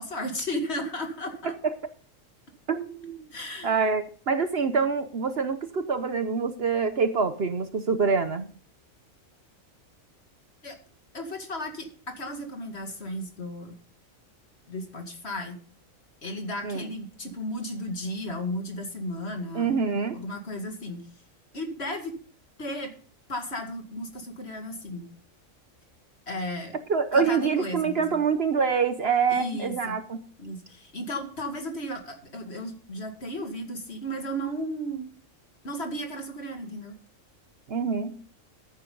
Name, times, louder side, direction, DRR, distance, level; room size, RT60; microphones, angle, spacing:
voice 1, 0.0-1.5 3.3-3.7 10.6-10.8 11.1-13.7 14.7-15.6 16.2-19.8 20.1-21.1 21.5-22.2 22.6-22.9 23.3-25.1 26.3-26.7 27.1-28.2 29.3-30.0 30.4-35.1 35.6-36.9, equal, 50° left, 4 dB, 2.4 m, -34 dB
voice 2, 2.7-3.3 3.6-8.5 16.6-16.8 19.5-20.2 26.9-30.2 37.7-38.2, right 5 dB, 50° right, 10 dB, 1.0 m, -26 dB
14.0 x 9.5 x 3.9 m, 0.42 s
omnidirectional pair, 1.4 m